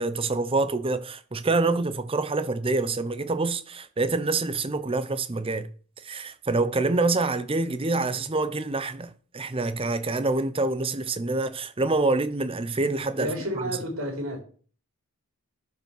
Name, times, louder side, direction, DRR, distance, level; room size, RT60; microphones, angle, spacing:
voice 1, 0.0-5.7 6.0-13.6, right 3 dB, 25° right, 0.7 m, -26 dB
voice 2, 13.2-14.4, equal, 60° right, 4.1 m, -30 dB
12.0 x 5.4 x 4.6 m
head